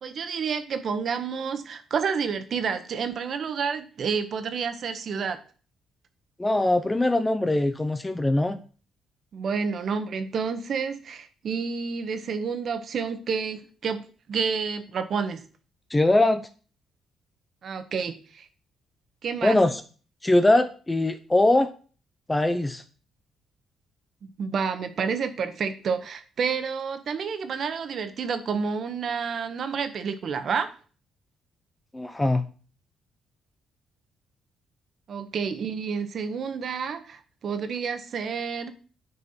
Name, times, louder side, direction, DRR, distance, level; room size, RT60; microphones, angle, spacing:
voice 1, 0.0-5.4 9.3-14.0 14.3-15.4 17.6-18.5 19.2-19.6 24.4-30.7 35.1-38.7, right 6 dB, 55° right, 9 dB, 1.3 m, -29 dB
voice 2, 6.4-8.6 15.9-16.5 19.4-19.8 20.2-21.7 22.3-22.8 31.9-32.5, left 2 dB, 15° left, 9 dB, 0.8 m, -22 dB
9.7 x 4.8 x 5.8 m, 0.39 s
cardioid pair, 90°, 0 cm